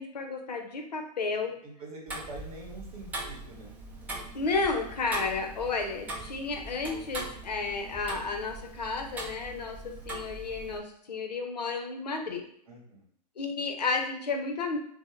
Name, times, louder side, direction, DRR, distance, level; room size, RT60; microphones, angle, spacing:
voice 1, 0.0-1.6 4.3-12.4 13.4-14.8, left 4 dB, 75° left, 3 dB, 0.6 m, -32 dB
voice 2, 1.6-3.7 12.7-13.0, right 1 dB, 60° right, -2 dB, 0.9 m, -45 dB
Tick-tock, 2.1-10.8, right 2 dB, 10° right, 0.3 m, -41 dB
2.1 x 2.0 x 3.0 m, 0.66 s
figure-of-eight pair, 105°, 21 cm